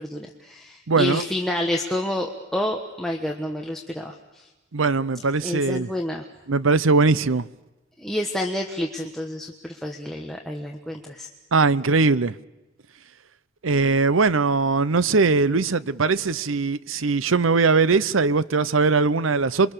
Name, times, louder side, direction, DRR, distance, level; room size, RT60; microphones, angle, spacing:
voice 1, 0.0-4.5 5.4-6.2 8.0-11.3, left 1 dB, ahead, 1.3 m, -29 dB
voice 2, 0.9-1.2 4.7-5.9 6.5-7.5 11.5-12.3 13.6-19.7, right 4 dB, 85° right, 0.8 m, -20 dB
28.5 x 23.5 x 6.9 m
head